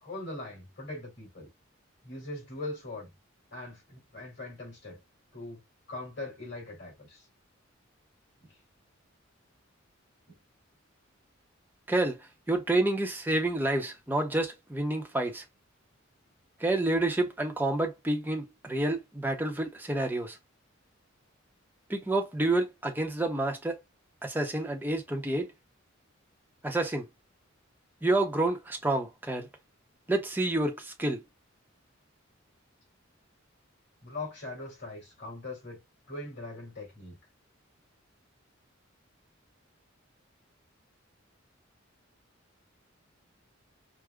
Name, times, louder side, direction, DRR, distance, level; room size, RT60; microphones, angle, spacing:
voice 1, 0.0-1.5 2.0-3.1 3.5-5.0 5.3-5.6 5.9-7.3 8.4-8.6 10.3-10.4 34.0-35.8 36.1-37.2, left 2 dB, 60° left, 2.5 m, -41 dB
voice 2, 12.5-15.4 16.6-20.4 21.9-23.8 24.2-25.5 26.6-27.1 28.0-29.5 30.1-31.2, right 2 dB, 10° right, 0.7 m, -29 dB
4.9 x 2.1 x 2.3 m
head